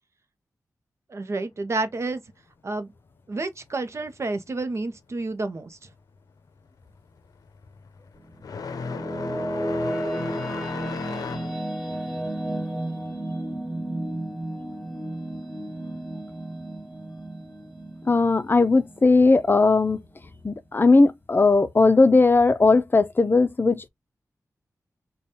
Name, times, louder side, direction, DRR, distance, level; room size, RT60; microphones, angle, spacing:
voice 1, 1.1-2.2 2.6-2.9 3.3-5.8, right 3 dB, 50° right, 0.7 m, -30 dB
sound 1, 5.8-6.2 6.5-14.8 15.1-16.1 17.1-17.2 18.0-18.1 19.9-20.0, left 5 dB, 85° left, 0.6 m, -37 dB
sound 2, 8.2-19.5, right 1 dB, ahead, 1.4 m, -33 dB
voice 2, 18.1-20.0 20.4-23.9, left 3 dB, 35° left, 0.5 m, -18 dB
5.1 x 2.3 x 2.7 m
wide cardioid pair, 80°, 6 cm